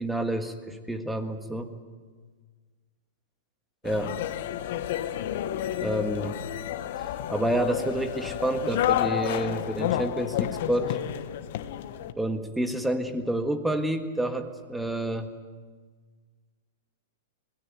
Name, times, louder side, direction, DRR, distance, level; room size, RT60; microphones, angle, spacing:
voice 1, 0.0-1.7 3.8-4.1 5.8-6.4 7.3-11.0 12.2-15.3, right 1 dB, 5° right, 7 dB, 1.6 m, -29 dB
sound 1, 3.8-12.1, left 11 dB, 60° left, 1.3 m, -30 dB
21.5 x 17.0 x 9.3 m, 1.5 s
hypercardioid pair, 140°, 0 cm